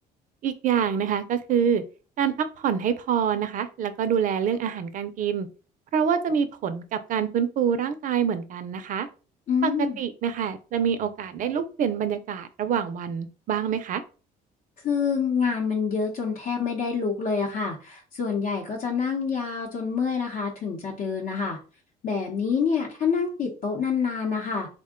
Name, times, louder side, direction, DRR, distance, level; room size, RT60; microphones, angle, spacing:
voice 1, 0.4-1.8 2.2-5.5 5.9-9.1 9.6-9.7 10.0-14.0, right 7 dB, 50° right, 12 dB, 0.5 m, -26 dB
voice 2, 9.5-10.0 14.8-21.6 22.0-24.7, left 6 dB, 55° left, -2 dB, 0.8 m, -27 dB
3.5 x 2.2 x 3.6 m, 0.36 s
cardioid pair, 110°, 17 cm